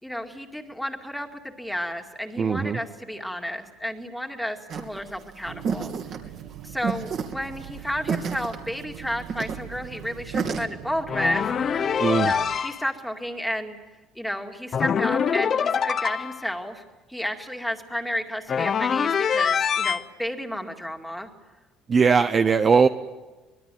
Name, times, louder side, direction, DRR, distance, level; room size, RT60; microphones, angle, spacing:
voice 1, 0.0-5.9 6.6-11.5 12.2-13.8 14.1-16.8 17.1-21.3, equal, ahead, 3 dB, 2.3 m, -32 dB
voice 2, 2.4-2.8 12.0-12.3 21.9-22.9, right 5 dB, 25° right, 9 dB, 0.8 m, -19 dB
sound 1, 4.7-10.6, right 6 dB, 45° right, 2.8 m, -31 dB
sound 2, 5.5-12.6, right 13 dB, 65° right, 1.1 m, -43 dB
sound 3, 11.1-12.8 14.7-16.4 18.5-20.0, left 7 dB, 35° left, 0.8 m, -24 dB
25.0 x 21.0 x 9.2 m, 1.2 s
cardioid pair, 150°, 0 cm